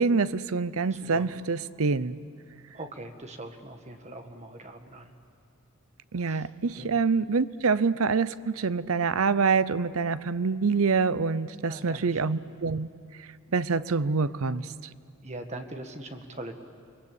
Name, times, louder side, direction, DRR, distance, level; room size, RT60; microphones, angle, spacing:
voice 1, 0.0-2.2 6.1-12.9 13.5-14.7, right 4 dB, 70° right, 16 dB, 0.7 m, -26 dB
voice 2, 0.9-1.3 2.7-5.1 6.2-6.5 6.8-6.9 11.7-12.4 15.2-16.6, right 2 dB, 30° right, 5 dB, 1.8 m, -41 dB
29.5 x 22.0 x 8.4 m, 2.5 s
head